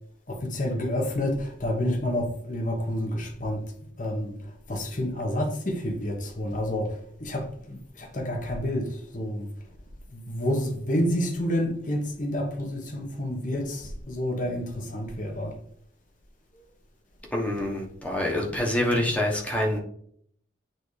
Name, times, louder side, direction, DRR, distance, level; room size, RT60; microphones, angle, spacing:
voice 1, 0.3-3.6 4.0-9.5 10.1-15.5, left 1 dB, 40° left, 1.2 m, -29 dB
voice 2, 17.3-19.8, left 1 dB, 5° left, 1.1 m, -26 dB
9.0 x 3.6 x 3.2 m
head